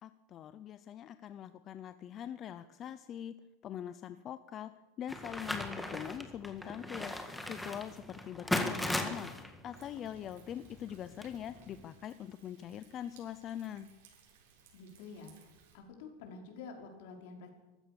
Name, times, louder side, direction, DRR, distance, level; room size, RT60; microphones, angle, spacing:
voice 1, 0.0-3.3 3.6-4.7 5.0-9.3 9.6-13.9, left 10 dB, 25° left, 12 dB, 0.6 m, -43 dB
sound 1, 5.1-11.8, left 1 dB, 5° left, 1.7 m, -38 dB
Thunder, 9.7-15.8, right 6 dB, 70° right, 7.3 m, -63 dB
voice 2, 14.7-15.3 15.7-17.5, left 4 dB, 60° left, 2 dB, 5.2 m, -48 dB
24.5 x 15.5 x 7.0 m, 1.1 s
supercardioid pair, 175°, 0 cm